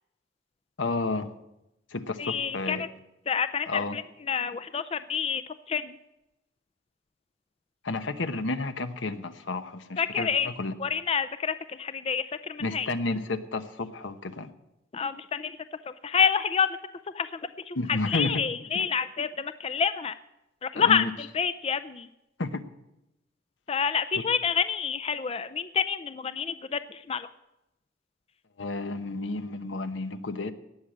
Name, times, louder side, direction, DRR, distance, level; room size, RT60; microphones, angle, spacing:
voice 1, 0.8-1.3 1.9-2.8 3.7-4.0 7.8-10.7 12.6-14.5 17.7-18.4 18.7-18.8 20.7-21.1 22.4-22.6 24.1-24.2 28.6-30.5, left 3 dB, 85° left, 10 dB, 1.0 m, -31 dB
voice 2, 2.2-2.8 3.3-4.0 4.3-5.4 5.7-6.0 10.0-10.5 10.8-12.9 14.9-15.6 16.0-16.7 17.1-17.4 17.7-17.8 18.1-20.1 20.6-22.1 23.7-27.3, left 6 dB, 30° left, 12 dB, 0.4 m, -28 dB
18.0 x 6.5 x 8.5 m, 0.90 s
head